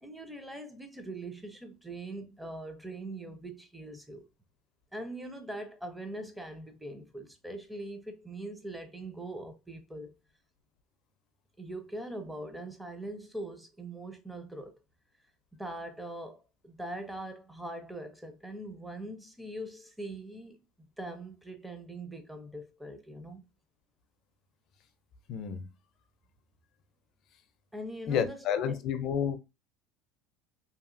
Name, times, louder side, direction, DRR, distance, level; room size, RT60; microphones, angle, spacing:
voice 1, 0.0-4.2 4.9-10.1 11.6-14.7 15.5-20.6 21.0-23.5 27.7-28.8, right 1 dB, 5° right, 0.5 m, -42 dB
voice 2, 25.3-25.6 28.1-29.4, left 8 dB, 50° left, 0.5 m, -30 dB
2.8 x 2.7 x 2.5 m
cardioid pair, 140°, 0 cm